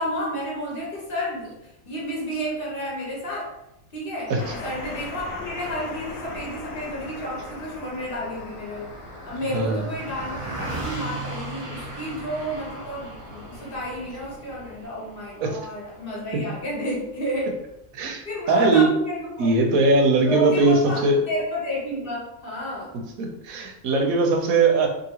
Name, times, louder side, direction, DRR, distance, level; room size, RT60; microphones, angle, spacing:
voice 1, 0.0-3.5 3.9-8.9 9.2-17.6 18.2-19.5 20.2-23.0, equal, 45° left, -5 dB, 1.0 m, -31 dB
sound 1, 4.4-14.9, left 2 dB, 80° left, 1.0 m, -40 dB
Car passing by, 8.2-17.9, right 2 dB, 25° right, 1.0 m, -38 dB
voice 2, 9.5-9.8 15.4-15.6 17.9-18.9 19.4-21.2 23.2-24.9, right 3 dB, 85° right, 2 dB, 1.1 m, -20 dB
2.8 x 2.7 x 2.8 m, 0.83 s
omnidirectional pair, 1.4 m